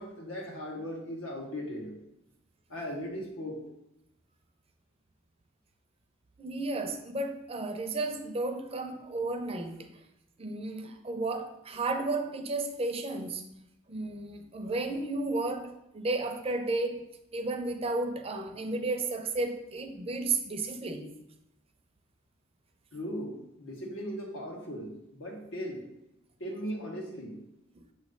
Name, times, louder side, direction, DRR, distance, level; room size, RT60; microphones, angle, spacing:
voice 1, 0.0-2.0 2.7-3.6 22.9-25.9 26.4-27.4, equal, 80° left, 0 dB, 1.5 m, -38 dB
voice 2, 6.4-9.8 10.4-13.4 13.9-17.0 17.3-21.1, right 2 dB, 30° right, 6 dB, 0.5 m, -33 dB
6.8 x 3.1 x 5.1 m, 0.84 s
head